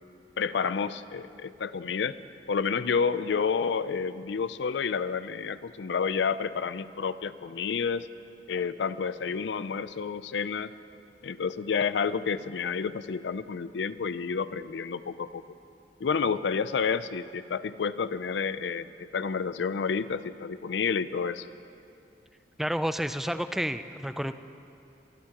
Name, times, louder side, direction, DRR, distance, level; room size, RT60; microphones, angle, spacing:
voice 1, 0.4-2.1 2.5-8.1 8.5-10.7 11.2-15.4 16.0-21.5, left 6 dB, 85° left, 15 dB, 0.5 m, -30 dB
voice 2, 22.6-24.4, equal, ahead, 10 dB, 0.4 m, -30 dB
25.0 x 16.0 x 2.9 m, 2.7 s
head